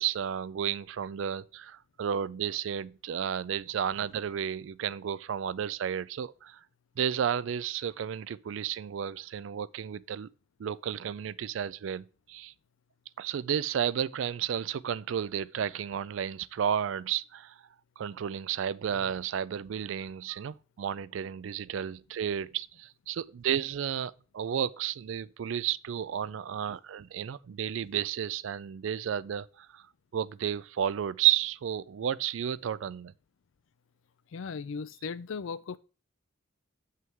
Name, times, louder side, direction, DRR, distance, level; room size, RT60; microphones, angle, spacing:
voice 1, 0.0-6.6 7.0-10.3 10.6-12.5 13.2-17.6 18.0-29.8 30.1-33.1, right 9 dB, 70° right, 0.3 m, -32 dB
voice 2, 34.3-35.8, left 5 dB, 70° left, 0.4 m, -37 dB
7.8 x 5.6 x 3.6 m
head